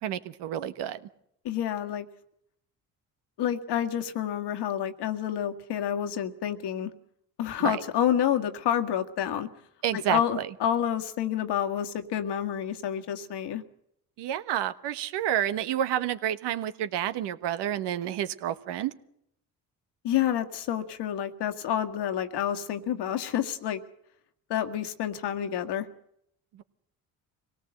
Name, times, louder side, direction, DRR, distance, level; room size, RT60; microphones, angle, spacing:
voice 1, 0.0-1.0 7.6-7.8 9.8-10.5 14.2-18.9, right 11 dB, 80° right, 12 dB, 1.3 m, -29 dB
voice 2, 1.4-2.1 3.4-6.9 7.4-9.5 9.9-13.6 20.0-23.8 24.5-25.9, left 10 dB, 70° left, 7 dB, 2.0 m, -29 dB
24.0 x 18.0 x 7.9 m, 0.74 s
supercardioid pair, 55°, 41 cm